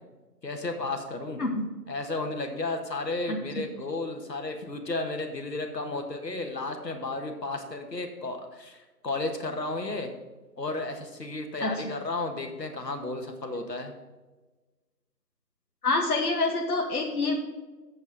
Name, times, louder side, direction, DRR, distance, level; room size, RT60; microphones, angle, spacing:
voice 1, 0.4-1.4 1.9-10.1 10.6-13.9, left 2 dB, 75° left, 4 dB, 1.7 m, -33 dB
voice 2, 3.3-3.6 11.6-11.9 15.8-17.4, left 3 dB, 60° left, 0 dB, 1.4 m, -27 dB
7.9 x 5.6 x 6.6 m, 1.2 s
figure-of-eight pair, 175°, 49 cm